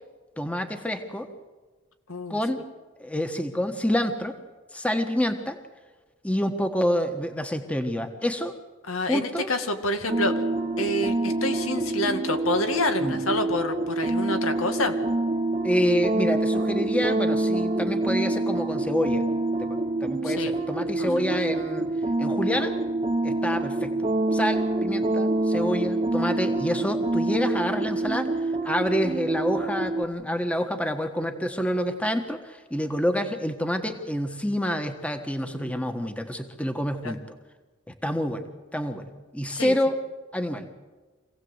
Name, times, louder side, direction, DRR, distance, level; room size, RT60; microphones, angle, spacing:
voice 1, 0.4-1.3 2.3-2.6 3.0-4.3 4.7-5.6 6.2-8.5 9.1-9.5 13.0-13.2 15.6-19.2 19.6-21.9 22.2-22.7 23.2-23.9 24.3-28.3 28.6-37.2 38.0-38.4 38.7-40.0 40.3-40.7, equal, 5° left, 6 dB, 1.3 m, -27 dB
voice 2, 2.1-2.4 8.9-10.4 10.8-15.0 20.2-20.6 21.0-21.4 35.4-35.8 37.0-37.1 39.5-39.8, left 2 dB, 90° left, 6 dB, 2.3 m, -28 dB
sound 1, 10.1-30.0, right 2 dB, 25° right, 1.3 m, -26 dB
26.0 x 17.0 x 8.1 m, 1.3 s
head